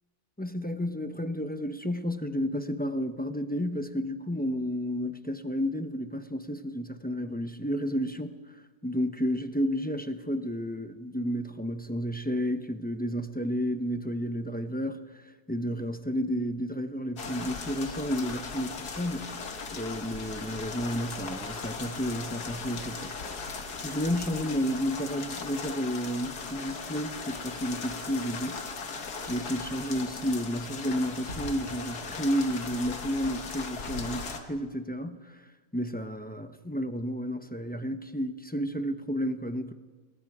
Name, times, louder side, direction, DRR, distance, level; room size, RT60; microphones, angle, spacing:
voice 1, 0.4-8.4 8.8-15.1 15.5-19.4 19.7-23.1 23.8-28.7 29.2-35.3 35.7-39.7, equal, 10° left, 8 dB, 0.6 m, -31 dB
sound 1, 17.2-34.4, left 4 dB, 85° left, 2.1 m, -38 dB
sound 2, 31.3-34.0, left 1 dB, 40° left, 7.0 m, -46 dB
28.0 x 21.5 x 4.9 m, 1.3 s
omnidirectional pair, 1.6 m